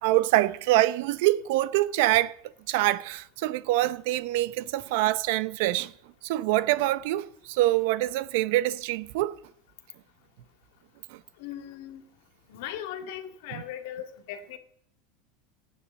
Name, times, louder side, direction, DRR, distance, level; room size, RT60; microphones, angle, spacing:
voice 1, 0.0-2.3 2.7-5.9 6.2-9.4, right 16 dB, 70° right, 0.8 m, -25 dB
voice 2, 11.4-12.0 12.5-14.6, left 10 dB, 70° left, 2.4 m, -38 dB
15.5 x 9.6 x 8.2 m
supercardioid pair, 145°, 0 cm